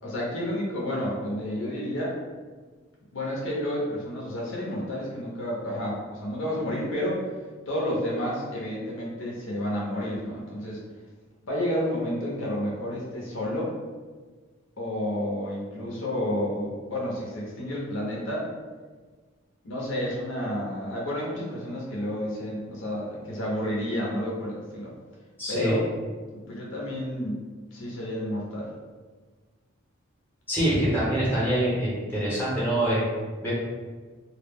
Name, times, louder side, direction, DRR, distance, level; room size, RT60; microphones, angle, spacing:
voice 1, 0.0-2.2 3.1-7.3 7.7-10.8 11.4-13.7 14.8-18.5 19.6-24.9 25.5-25.9 26.3-27.4 27.7-28.7, left 1 dB, 70° left, -4 dB, 0.6 m, -30 dB
voice 2, 25.4-25.7 30.5-33.1 33.4-33.5, right 1 dB, 10° left, -8 dB, 0.8 m, -25 dB
2.2 x 2.0 x 3.4 m, 1.4 s
head